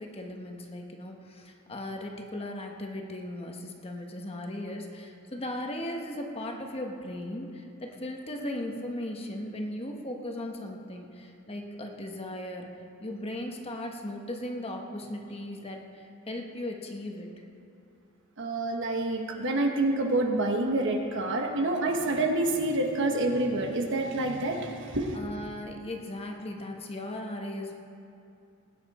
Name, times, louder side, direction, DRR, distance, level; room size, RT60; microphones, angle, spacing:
voice 1, 0.0-12.7 13.0-17.3 25.1-27.7, left 1 dB, 30° left, 2 dB, 1.2 m, -37 dB
voice 2, 18.4-25.2, right 2 dB, 60° right, 3 dB, 1.3 m, -27 dB
19.5 x 9.3 x 4.2 m, 2.6 s
head